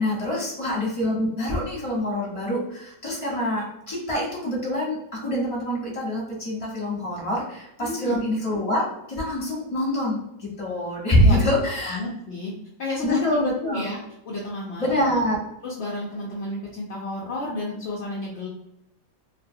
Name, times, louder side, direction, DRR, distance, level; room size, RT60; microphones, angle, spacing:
voice 1, 0.0-12.0 13.0-13.8 14.8-15.4, equal, 20° left, -5 dB, 1.2 m, -25 dB
voice 2, 7.8-8.2 11.2-11.4 11.8-12.5 12.8-14.0 14.3-15.0 15.6-18.5, left 2 dB, 65° left, -5 dB, 0.6 m, -31 dB
2.7 x 2.4 x 2.6 m, 0.80 s
omnidirectional pair, 1.8 m